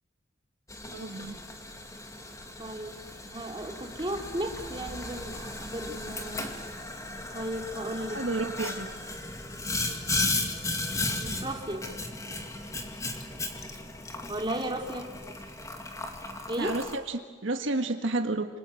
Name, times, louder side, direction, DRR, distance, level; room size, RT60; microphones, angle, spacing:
Boiling, 0.7-17.0, left 2 dB, 15° left, 2.3 m, -35 dB
voice 1, 0.9-1.4 8.1-8.9 14.3-14.4 15.2-15.3 16.6-18.5, right 2 dB, 75° right, 6 dB, 1.6 m, -31 dB
voice 2, 2.6-2.9 3.3-6.4 7.3-8.2 10.5-10.6 10.9-11.9 14.3-15.1 16.5-16.8, right 1 dB, 25° right, 1 dB, 3.1 m, -35 dB
26.5 x 26.5 x 7.8 m, 1.4 s
head